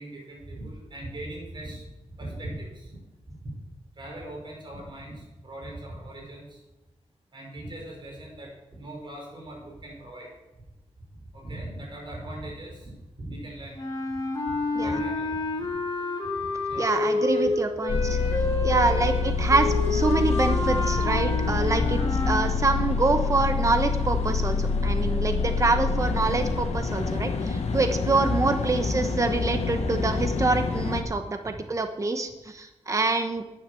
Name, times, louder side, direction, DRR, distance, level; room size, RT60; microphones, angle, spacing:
voice 1, 0.0-1.9 2.2-3.0 3.3-3.5 4.0-6.6 7.3-10.3 11.1-12.9 13.2-13.8 14.1-14.2 14.8-15.7 16.4-17.6 17.9-18.6 19.0-19.5 20.6-20.8 21.8-22.1 22.4-22.8 25.0-25.2 25.8-25.9 30.1-30.2 31.4-31.7, right 1 dB, 45° right, -1 dB, 5.3 m, -40 dB
sound 1, 13.8-22.5, left 2 dB, 35° left, 2.7 m, -29 dB
voice 2, 16.8-18.0 18.6-22.0 22.3-27.3 27.7-33.4, right 3 dB, 30° right, 7 dB, 1.0 m, -25 dB
sound 2, 17.9-31.0, left 4 dB, 80° left, 1.5 m, -26 dB
10.0 x 9.3 x 7.0 m, 1.0 s
wide cardioid pair, 110°, 11 cm